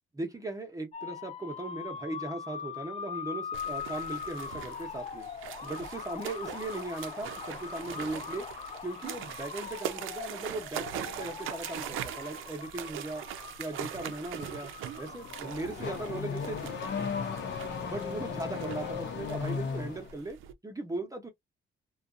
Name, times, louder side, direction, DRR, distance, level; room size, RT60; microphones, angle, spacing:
voice 1, 0.1-5.3 5.6-13.2 13.6-14.7 15.0-16.8 17.8-20.4 20.6-21.3, right 2 dB, 15° right, 0.8 m, -38 dB
sound 1, 0.9-16.4, left 7 dB, 30° left, 0.4 m, -42 dB
sound 2, 3.5-20.5, right 10 dB, 85° right, 0.5 m, -42 dB
Car / Accelerating revving vroom, 15.1-20.1, left 6 dB, 65° left, 0.8 m, -36 dB
2.5 x 2.3 x 2.5 m
cardioid pair, 90°, 20 cm